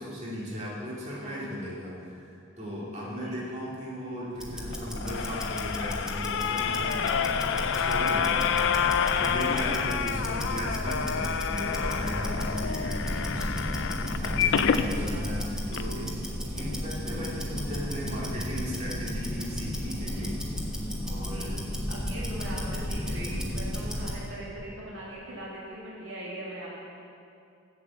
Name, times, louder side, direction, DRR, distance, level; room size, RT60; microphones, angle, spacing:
voice 1, 0.0-7.0 7.6-8.6 9.2-16.1 16.5-20.4 21.0-21.5, equal, 35° right, -6 dB, 2.5 m, -37 dB
Tick-tock, 4.3-24.3, equal, 5° right, 1.2 m, -33 dB
sound 1, 4.7-14.9 15.4-15.5 15.7-15.8, left 7 dB, 65° left, 0.4 m, -28 dB
voice 2, 6.6-8.2 8.5-8.7 9.1-9.9 14.8-15.3 21.1-21.6 21.9-26.7, right 1 dB, 65° right, -6 dB, 2.1 m, -41 dB
7.8 x 7.6 x 7.1 m, 2.5 s
head